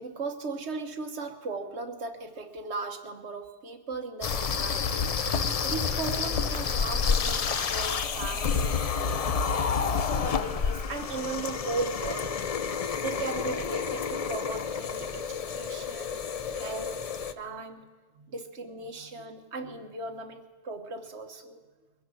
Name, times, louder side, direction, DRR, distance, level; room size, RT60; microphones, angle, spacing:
voice 1, 0.0-12.3 13.0-16.2 16.5-17.9 18.1-21.6, right 3 dB, 60° right, 6 dB, 1.4 m, -37 dB
sound 1, 4.2-17.3, left 6 dB, 60° left, 0.4 m, -29 dB
22.0 x 10.0 x 6.2 m, 1.3 s
omnidirectional pair, 1.3 m